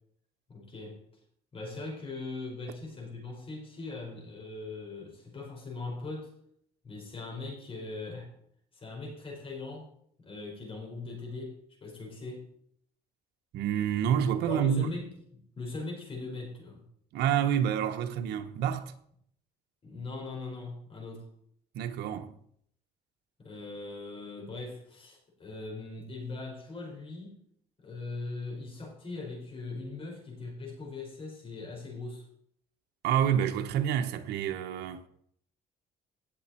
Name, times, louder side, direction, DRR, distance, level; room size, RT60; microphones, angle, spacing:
voice 1, 0.5-1.0 1.5-6.3 6.8-8.3 8.7-9.9 10.2-11.6 11.8-12.5 14.5-16.8 19.8-21.3 23.4-27.4 27.8-32.2, left 3 dB, 35° left, 4.8 m, -40 dB
voice 2, 13.5-14.9 17.1-18.9 21.7-22.3 33.0-35.1, right 9 dB, 80° right, 1.1 m, -28 dB
17.5 x 7.1 x 4.4 m
cardioid pair, 110°, 17 cm